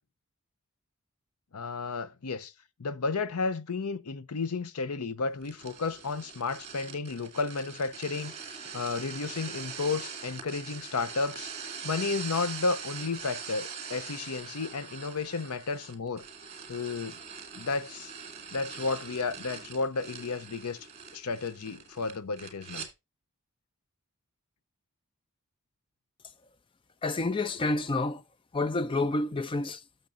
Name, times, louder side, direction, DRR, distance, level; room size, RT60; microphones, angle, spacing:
voice 1, 1.5-2.5 2.8-11.5 11.8-16.2 16.7-17.2 17.5-18.1 18.5-20.9 21.1-22.9, left 4 dB, 90° left, 0.7 m, -32 dB
sound 1, 5.4-22.9, right 6 dB, 30° right, 2.1 m, -43 dB
voice 2, 27.0-28.2 28.5-29.8, left 2 dB, 25° left, 0.4 m, -29 dB
13.5 x 6.6 x 2.6 m
head